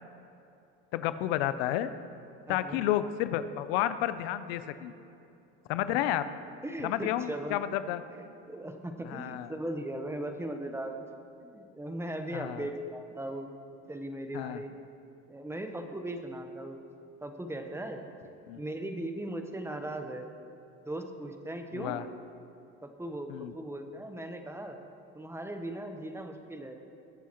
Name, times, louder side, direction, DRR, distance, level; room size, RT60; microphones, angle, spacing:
voice 1, 0.9-1.9 2.5-4.9 5.7-6.2 6.8-8.0 9.1-9.5 12.3-12.6 14.3-14.6 18.5-18.6 21.7-22.0 23.3-23.5, left 12 dB, 85° left, 12 dB, 0.6 m, -31 dB
voice 2, 2.5-2.8 5.9-6.0 6.6-7.6 8.1-11.0 11.4-13.5 13.9-14.8 15.3-16.8 17.2-18.0 18.5-20.3 20.9-22.0 22.8-24.8 25.1-26.8, right 1 dB, 10° right, 5 dB, 0.9 m, -38 dB
21.0 x 7.2 x 3.0 m, 2.7 s
supercardioid pair, 100°, 30 cm